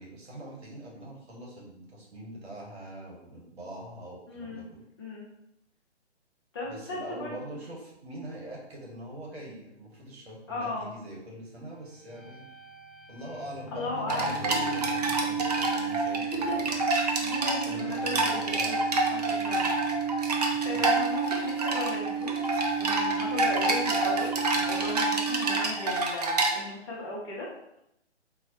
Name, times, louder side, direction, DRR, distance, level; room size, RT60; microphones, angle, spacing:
voice 1, 0.0-4.8 6.6-12.4 13.1-16.8 17.7-18.6 20.5-20.8, right 1 dB, 65° right, -2 dB, 1.3 m, -43 dB
voice 2, 4.3-4.6 5.0-5.3 6.5-7.4 10.5-10.9 13.7-14.8 16.0-16.8 17.2-18.8 19.1-19.7 20.6-22.3 22.8-27.5, left 2 dB, 25° left, -5 dB, 0.6 m, -36 dB
sound 1, 11.9-26.0, right 7 dB, 5° left, 1.3 m, -34 dB
sound 2, 14.1-26.5, right 2 dB, 40° right, 0.4 m, -28 dB
3.9 x 2.3 x 2.8 m, 0.82 s
figure-of-eight pair, 135°, 35 cm